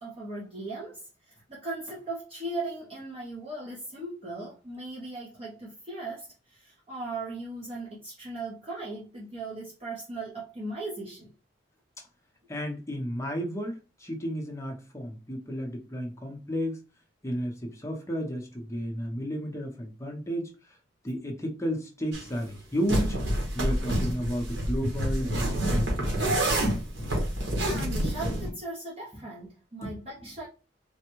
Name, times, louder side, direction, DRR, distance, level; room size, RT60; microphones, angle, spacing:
voice 1, 0.0-11.3 27.4-30.5, right 2 dB, 30° right, 0.7 m, -38 dB
voice 2, 12.5-16.8 17.2-20.5 21.0-23.2 23.5-26.1 29.1-29.2 29.8-30.3, equal, 15° left, 0.6 m, -33 dB
sound 1, 22.1-22.3 22.9-28.5, right 1 dB, 75° right, 1.1 m, -27 dB
3.4 x 2.1 x 3.0 m
head